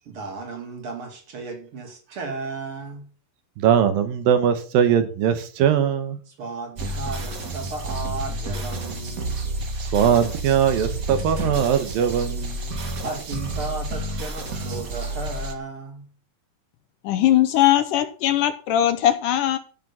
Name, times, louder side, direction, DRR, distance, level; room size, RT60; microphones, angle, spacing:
voice 1, 0.0-3.1 6.3-9.4 13.0-16.1, right 3 dB, 40° right, 2.9 m, -34 dB
voice 2, 3.6-6.2 9.8-12.8, right 8 dB, 75° right, 2.8 m, -21 dB
sound 1, 6.8-15.5, right 1 dB, 55° right, 0.9 m, -30 dB
voice 3, 17.0-19.6, left 12 dB, 75° left, 2.1 m, -20 dB
14.0 x 6.2 x 5.5 m
omnidirectional pair, 4.1 m